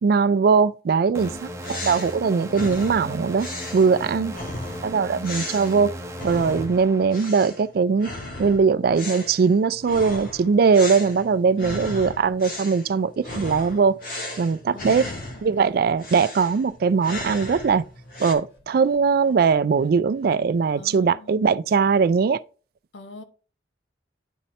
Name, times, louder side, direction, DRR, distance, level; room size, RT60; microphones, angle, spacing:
voice 1, 0.0-3.5 3.7-4.3 4.8-6.0 6.2-8.1 8.4-14.0 14.4-15.0 15.4-17.9 18.2-22.4, right 5 dB, 55° right, 0.3 m, -20 dB
sound 1, 1.1-7.6, equal, 15° right, 0.8 m, -37 dB
sound 2, 1.2-6.8 7.1-7.6 8.0-15.6 16.0-18.3, left 1 dB, 50° left, 1.6 m, -36 dB
voice 2, 4.2-4.5 4.9-5.1 11.6-11.9 14.7-15.2 15.5-15.7 20.8-21.5 22.9-23.2, left 2 dB, 90° left, 1.0 m, -42 dB
sound 3, 15.2-16.2 16.7-17.0 17.3-17.6 17.8-21.1, left 1 dB, 70° left, 3.3 m, -57 dB
10.0 x 4.1 x 3.2 m
head